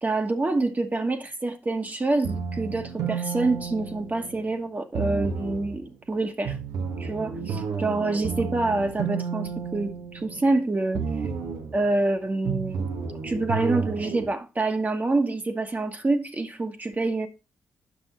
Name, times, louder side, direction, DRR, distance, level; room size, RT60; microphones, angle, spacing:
voice 1, 0.0-6.6 7.0-11.0 11.7-12.9 13.2-17.3, right 2 dB, 30° right, 1.3 m, -26 dB
sound 1, 2.2-4.5 4.9-5.8 6.5-10.6 10.9-11.8 12.5-14.2, right 6 dB, 85° right, 1.4 m, -31 dB
8.0 x 6.0 x 4.3 m
cardioid pair, 70°, 6 cm